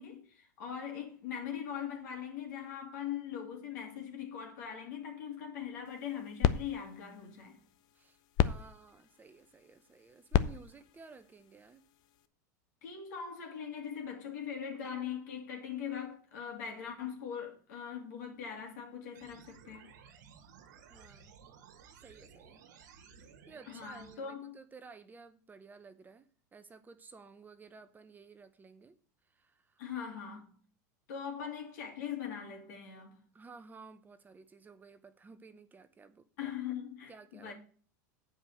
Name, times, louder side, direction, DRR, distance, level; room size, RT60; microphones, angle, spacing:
voice 1, 0.0-7.6 12.8-19.9 23.7-24.6 29.8-30.5 31.1-33.2 36.4-37.5, left 8 dB, 70° left, 2.7 m, -41 dB
sound 1, 5.8-12.3, left 11 dB, 50° left, 0.6 m, -35 dB
voice 2, 7.9-11.8 20.9-21.4 22.0-22.6 23.2-26.3 26.5-29.0 29.3-29.8 33.3-36.5 37.1-37.5, right 4 dB, 20° right, 0.8 m, -55 dB
sound 2, 19.1-24.1, right 6 dB, 75° right, 1.5 m, -56 dB
8.2 x 4.8 x 6.7 m
hypercardioid pair, 105°, 10 cm